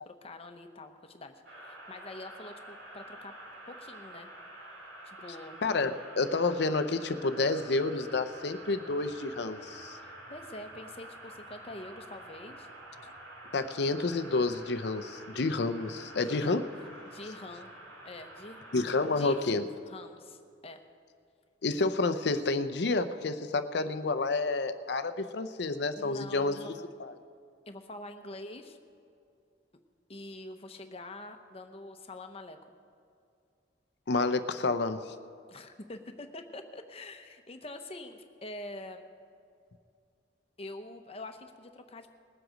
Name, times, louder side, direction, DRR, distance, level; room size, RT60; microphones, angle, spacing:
voice 1, 0.1-3.3 3.7-4.3 5.0-5.6 10.0-12.7 16.2-16.6 17.0-17.7 18.0-18.7 19.2-19.5 19.8-20.8 26.0-26.7 27.7-28.8 30.1-32.6 35.5-39.1 40.6-42.1, left 2 dB, 35° left, 6 dB, 0.9 m, -45 dB
sound 1, 1.4-19.4, right 1 dB, 85° right, 2.7 m, -48 dB
voice 2, 5.6-10.0 13.5-16.6 18.7-19.7 21.6-26.7 27.0-27.1 34.1-35.1, left 3 dB, 65° left, 10 dB, 0.6 m, -29 dB
20.0 x 7.9 x 5.0 m, 2.4 s
head